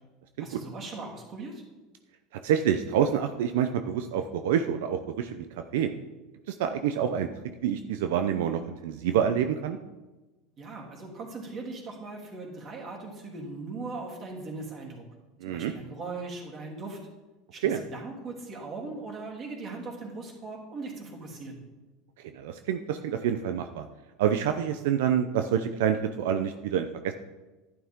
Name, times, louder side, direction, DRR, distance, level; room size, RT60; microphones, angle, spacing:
voice 1, 0.4-1.6 10.6-15.0 15.4-17.0 17.5-21.6, right 3 dB, 35° right, -1 dB, 3.2 m, -39 dB
voice 2, 2.4-5.5 5.7-5.9 6.5-7.3 7.6-9.8 15.4-15.7 17.6-17.8 22.3-23.9 24.2-27.1, right 9 dB, 80° right, 7 dB, 0.6 m, -27 dB
11.5 x 11.0 x 3.7 m, 1.1 s
supercardioid pair, 135°, 0 cm